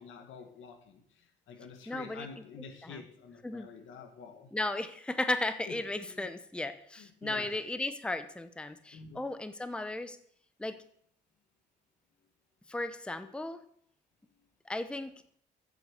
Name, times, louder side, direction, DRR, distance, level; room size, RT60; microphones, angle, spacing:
voice 1, 0.0-4.5 5.7-5.8 6.0-6.3 7.0-7.6 8.9-9.2, left 5 dB, 80° left, 6 dB, 1.8 m, -48 dB
voice 2, 1.9-2.3 2.8-3.0 3.4-3.7 4.5-10.2 10.6-10.8 12.7-13.6 14.7-15.1, left 2 dB, 5° left, 11 dB, 0.7 m, -35 dB
8.4 x 7.0 x 7.9 m, 0.64 s
cardioid pair, 90°, 20 cm